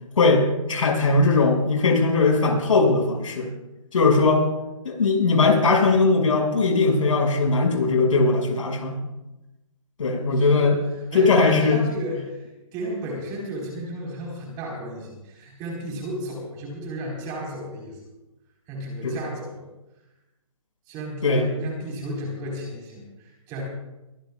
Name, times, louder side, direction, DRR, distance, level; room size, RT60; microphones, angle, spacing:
voice 1, 0.2-3.5 3.9-4.5 4.8-9.0 10.0-10.8 11.1-11.8 19.0-19.2 21.2-21.5, left 3 dB, 65° left, 1 dB, 6.1 m, -19 dB
voice 2, 10.3-10.7 11.1-18.0 18.7-19.6 20.9-23.6, right 1 dB, 20° right, -1 dB, 4.5 m, -33 dB
23.0 x 18.0 x 2.4 m, 1.0 s
hypercardioid pair, 160°, 18 cm